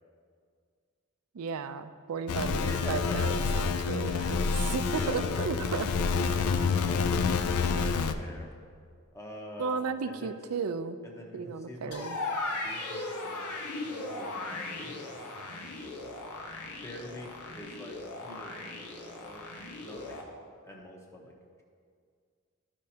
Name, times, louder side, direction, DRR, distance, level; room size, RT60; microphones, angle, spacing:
voice 1, 1.3-5.9 9.6-11.0 11.3-12.2, right 5 dB, 75° right, 11 dB, 0.4 m, -34 dB
sound 1, 2.3-8.1, left 5 dB, 70° left, 0.4 m, -28 dB
voice 2, 2.5-3.2 4.9-5.8 6.5-8.5 9.1-10.3 11.0-12.1 12.5-14.9 16.8-19.4 19.8-20.2 20.6-21.3, equal, 15° left, 0 dB, 1.0 m, -45 dB
sound 2, 11.9-20.2, left 2 dB, 90° left, 1.1 m, -38 dB
13.5 x 5.2 x 2.8 m, 2.1 s
head